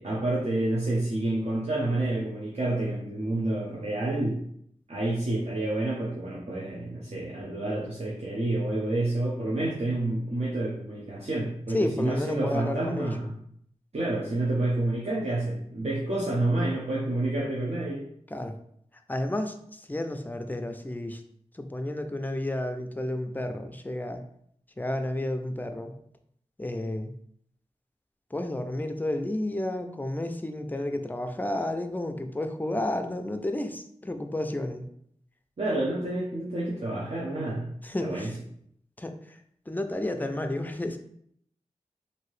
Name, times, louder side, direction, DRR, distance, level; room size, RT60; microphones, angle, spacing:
voice 1, 0.0-4.4 4.9-13.4 13.9-18.0 35.6-37.7 38.0-38.3, right 2 dB, 60° right, -6 dB, 0.7 m, -29 dB
voice 2, 11.7-13.2 18.3-18.5 19.1-21.2 21.5-24.2 24.8-25.9 26.6-27.1 28.3-34.9 37.8-38.3 39.0-39.4 39.7-41.0, left 1 dB, 15° left, 6 dB, 0.4 m, -31 dB
2.8 x 2.7 x 3.1 m, 0.69 s
wide cardioid pair, 50°, 13 cm